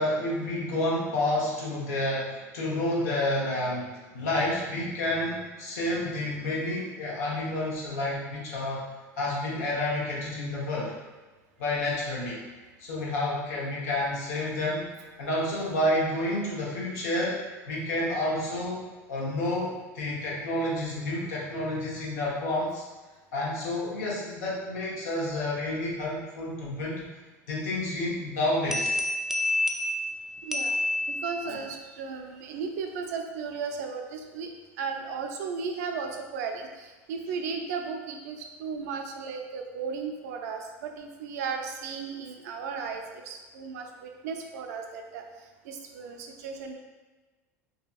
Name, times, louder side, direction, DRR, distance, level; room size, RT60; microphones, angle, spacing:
voice 1, 0.0-3.9 4.1-8.8 9.2-10.9 11.6-12.4 12.8-14.9 15.2-22.8 23.3-27.0 27.5-29.0 31.4-31.5, left 1 dB, 80° left, -4 dB, 0.8 m, -29 dB
sound 1, 28.7-31.7, left 1 dB, 5° right, 0.3 m, -29 dB
voice 2, 30.4-30.7 31.1-34.5 34.8-45.2 45.7-46.7, right 5 dB, 80° right, 4 dB, 0.4 m, -35 dB
2.7 x 2.7 x 2.3 m, 1.2 s
hypercardioid pair, 90°, 8 cm